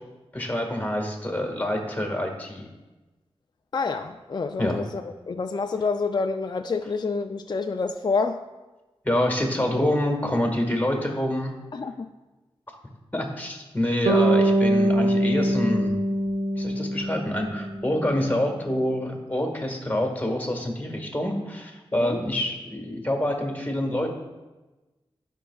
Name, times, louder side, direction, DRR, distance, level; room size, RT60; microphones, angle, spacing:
voice 1, 0.3-2.7 4.6-4.8 9.0-11.5 13.1-16.0 16.5-24.1, left 1 dB, 15° left, 1 dB, 1.6 m, -26 dB
voice 2, 3.7-8.4 11.7-12.1 21.9-22.2, left 4 dB, 45° left, 6 dB, 0.4 m, -28 dB
Bass guitar, 14.1-18.2, right 1 dB, 80° right, 0.9 m, -23 dB
12.5 x 5.5 x 2.4 m, 1.1 s
cardioid pair, 55°, 10 cm